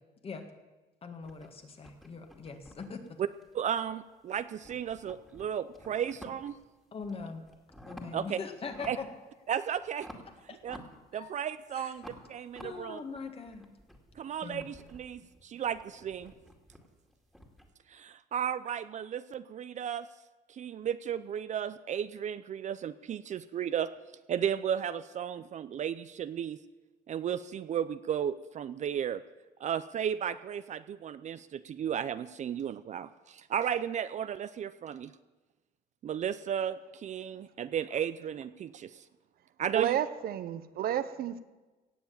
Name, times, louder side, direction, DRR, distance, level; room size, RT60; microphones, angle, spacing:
voice 1, 1.0-3.2 6.9-7.4 7.8-9.1 10.5-10.6 11.1-11.3 11.7-11.9 12.6-13.7 14.4-14.6, left 4 dB, 35° left, 6 dB, 1.9 m, -41 dB
sound 1, 1.2-4.1 4.4-6.6 7.0-8.3 8.6-9.2 9.5-11.5 12.0-17.7, left 1 dB, ahead, 2.3 m, -52 dB
voice 2, 3.5-6.6 8.1-8.4 8.8-9.0 9.5-10.1 10.6-10.8 11.1-13.0 14.2-16.3 17.9-20.1 20.5-23.9 24.3-26.6 27.1-29.2 29.6-35.1 36.0-39.0 39.6-40.0, right 9 dB, 45° right, 13 dB, 0.5 m, -34 dB
voice 3, 39.7-41.4, right 10 dB, 65° right, 12 dB, 0.9 m, -31 dB
17.0 x 7.2 x 8.8 m, 1.2 s
cardioid pair, 110°, 17 cm